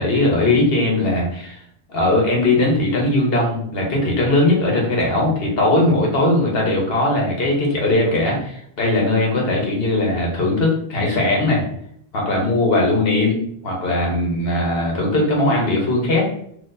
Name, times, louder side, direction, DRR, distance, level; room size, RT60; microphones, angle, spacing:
voice 1, 0.0-1.6 1.9-11.7 12.1-13.4 13.6-16.3, left 2 dB, 65° left, -2 dB, 1.3 m, -19 dB
4.1 x 2.8 x 2.6 m, 0.68 s
omnidirectional pair, 1.1 m